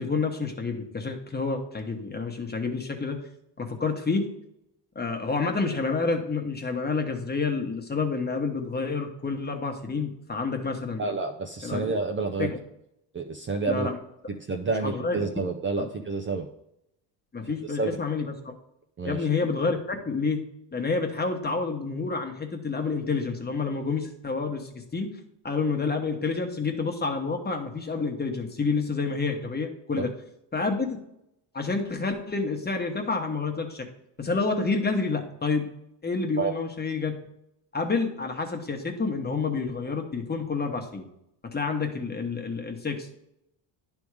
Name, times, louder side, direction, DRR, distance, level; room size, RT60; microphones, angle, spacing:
voice 1, 0.0-3.2 3.6-4.2 4.9-11.0 11.6-11.8 12.4-12.6 13.7-14.0 14.8-15.2 15.8-15.9 17.3-18.5 19.0-20.4 20.7-25.1 25.4-30.1 30.5-30.9 31.5-33.8 34.2-35.7 36.0-37.1 37.7-41.0 41.5-43.1, left 4 dB, 20° left, 4 dB, 1.2 m, -28 dB
voice 2, 11.0-12.5 13.1-13.9 14.4-16.5 17.4-17.9 19.0-19.3 30.0-30.1 36.4-36.5, right 4 dB, 25° right, 4 dB, 0.6 m, -29 dB
10.5 x 3.6 x 4.8 m, 0.81 s
cardioid pair, 100°, 47 cm